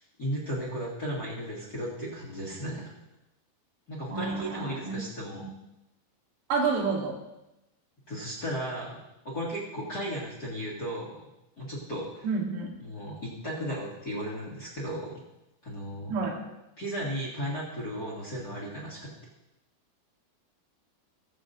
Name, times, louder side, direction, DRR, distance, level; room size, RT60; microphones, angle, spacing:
voice 1, 0.2-2.9 3.9-5.5 8.1-9.0 9.2-11.3 11.6-12.3 12.8-15.2 15.6-16.1 16.8-19.2, equal, 35° left, -5 dB, 1.8 m, -35 dB
voice 2, 4.1-5.0 5.4-5.5 6.5-7.2 12.2-12.7 16.1-16.4, right 4 dB, 85° right, 0 dB, 3.5 m, -29 dB
21.0 x 7.2 x 2.6 m, 0.91 s
omnidirectional pair, 4.6 m